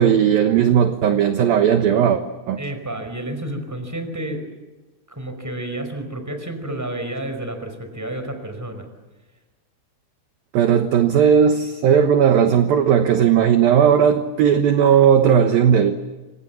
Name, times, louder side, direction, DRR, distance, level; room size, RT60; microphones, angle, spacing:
voice 1, 0.0-2.2 2.5-2.6 10.5-16.0, right 8 dB, 70° right, 7 dB, 2.4 m, -16 dB
voice 2, 2.6-4.4 5.1-8.9, right 1 dB, 5° right, 7 dB, 4.3 m, -30 dB
28.5 x 27.5 x 7.2 m, 1.2 s
omnidirectional pair, 5.7 m